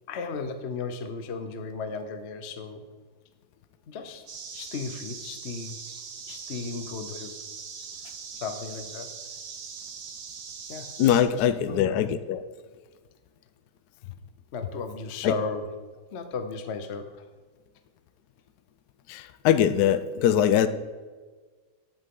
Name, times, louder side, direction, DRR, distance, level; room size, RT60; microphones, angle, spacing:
voice 1, 0.1-2.8 3.9-4.2 4.5-5.8 6.3-7.3 8.3-9.1 10.7-10.9 11.3-12.1 14.5-15.6 16.1-17.1, left 4 dB, 50° left, 8 dB, 0.9 m, -35 dB
sound 1, 4.3-11.2, right 6 dB, 55° right, 1.4 m, -41 dB
voice 2, 11.0-12.4 15.2-15.3 19.1-20.7, left 10 dB, 75° left, 12 dB, 1.0 m, -22 dB
11.5 x 8.0 x 3.7 m, 1.4 s
omnidirectional pair, 1.9 m